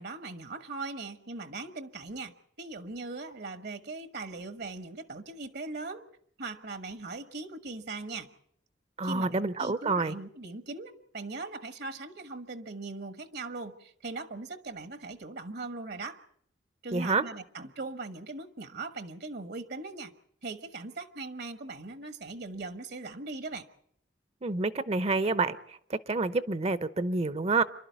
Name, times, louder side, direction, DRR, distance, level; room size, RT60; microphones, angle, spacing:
voice 1, 0.0-6.0 6.4-8.3 9.0-16.2 16.8-20.1 20.4-23.7, right 3 dB, 60° right, 11 dB, 1.3 m, -40 dB
voice 2, 9.0-10.2 16.9-17.2 24.4-27.6, right 3 dB, 35° right, 14 dB, 0.8 m, -28 dB
26.5 x 12.0 x 9.3 m, 0.69 s
head